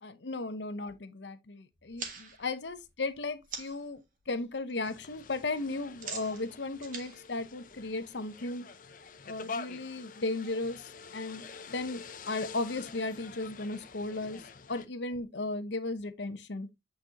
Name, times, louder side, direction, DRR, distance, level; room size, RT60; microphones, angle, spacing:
voice 1, 0.0-4.0 4.3-8.6 9.2-16.7, left 2 dB, 75° left, 0.8 m, -36 dB
sound 1, 1.7-3.9 4.3-4.7 5.0-8.3, right 5 dB, 45° right, 1.6 m, -44 dB
sound 2, 4.8-14.8, left 5 dB, 45° left, 0.6 m, -47 dB
8.6 x 4.3 x 2.9 m
head